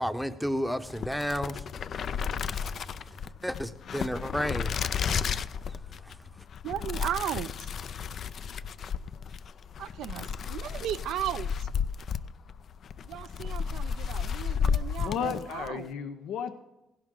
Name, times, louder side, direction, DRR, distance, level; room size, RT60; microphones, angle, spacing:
voice 1, 0.0-1.6 2.0-2.1 3.4-5.3 5.7-5.8, equal, ahead, 0.7 m, -32 dB
sound 1, 0.8-15.8, left 7 dB, 60° left, 0.4 m, -33 dB
voice 2, 6.6-7.7 9.8-11.7 13.0-15.9, right 12 dB, 85° right, 0.3 m, -36 dB
voice 3, 15.0-16.6, left 7 dB, 85° left, 0.7 m, -34 dB
16.0 x 11.0 x 3.8 m
cardioid pair, 90°, 0 cm